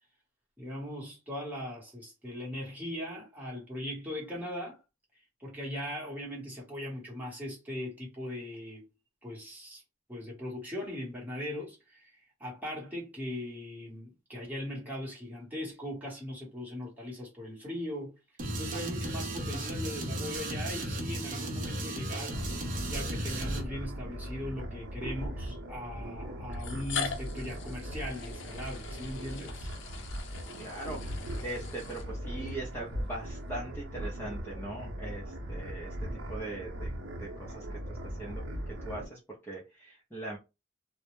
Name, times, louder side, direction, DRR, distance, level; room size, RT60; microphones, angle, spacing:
voice 1, 0.6-4.8 5.4-8.8 9.2-9.8 10.1-18.1 18.6-22.4 22.8-29.7, left 1 dB, 10° right, 1.0 m, -39 dB
sound 1, 18.4-23.6, right 1 dB, 40° right, 0.6 m, -35 dB
sound 2, 22.3-39.1, equal, 80° right, 0.7 m, -39 dB
sound 3, 24.2-24.3 25.5-25.6 26.5-32.5, left 6 dB, 65° left, 0.5 m, -42 dB
voice 2, 30.6-35.9 36.3-36.9 37.2-40.4, right 2 dB, 10° left, 0.6 m, -41 dB
2.2 x 2.0 x 2.9 m
head